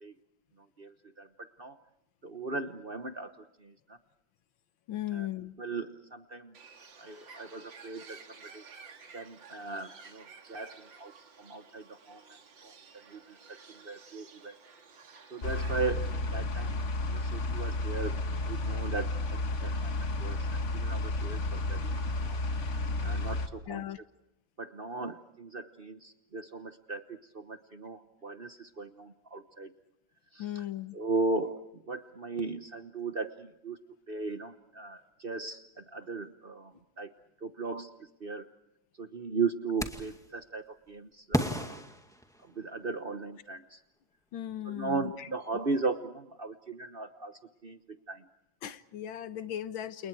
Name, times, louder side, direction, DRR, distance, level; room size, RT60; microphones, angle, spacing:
voice 1, 0.8-1.8 2.2-4.0 5.1-5.3 5.6-6.5 7.0-8.6 9.1-11.1 11.4-12.7 13.1-14.6 15.3-16.8 17.1-18.2 18.5-20.5 20.7-22.4 23.0-23.8 24.6-29.7 30.3-30.6 30.9-33.8 34.1-37.1 37.4-38.5 39.0-41.8 42.4-43.8 44.7-48.3, right 3 dB, 35° right, 9 dB, 1.0 m, -37 dB
voice 2, 4.9-5.6 23.7-24.0 30.4-31.0 44.3-45.3 48.6-50.1, left 12 dB, 85° left, 12 dB, 1.9 m, -37 dB
Bird, 6.5-16.1, right 5 dB, 70° right, 2.7 m, -53 dB
sound 1, 15.4-23.5, left 2 dB, 40° left, 1.6 m, -32 dB
sound 2, 39.8-40.3 41.3-42.8, equal, ahead, 2.1 m, -33 dB
29.5 x 29.0 x 4.7 m, 0.84 s
omnidirectional pair, 2.1 m